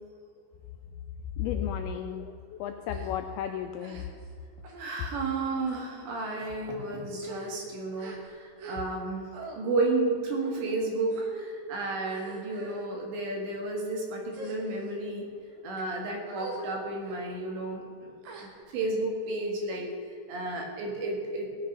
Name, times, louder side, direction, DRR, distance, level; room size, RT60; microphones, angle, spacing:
voice 1, 1.4-4.0, left 9 dB, 85° left, 6 dB, 2.2 m, -33 dB
sound 1, 2.9-3.1 3.8-4.3 4.6-4.9 5.6-5.9 6.6-6.7 7.1-9.1 9.3-9.6 10.4-10.7 11.1-11.5 12.0-12.8 13.5-13.8 14.3-15.0 15.6-15.8 16.3-16.7 17.0-17.2 18.2-18.9, right 3 dB, 60° right, 2.9 m, -44 dB
voice 2, 4.8-9.3 9.5-15.3 15.6-18.1 18.4-19.9 20.3-21.5, right 2 dB, 80° right, 0 dB, 4.3 m, -32 dB
16.0 x 9.7 x 5.5 m, 2.3 s
omnidirectional pair, 5.0 m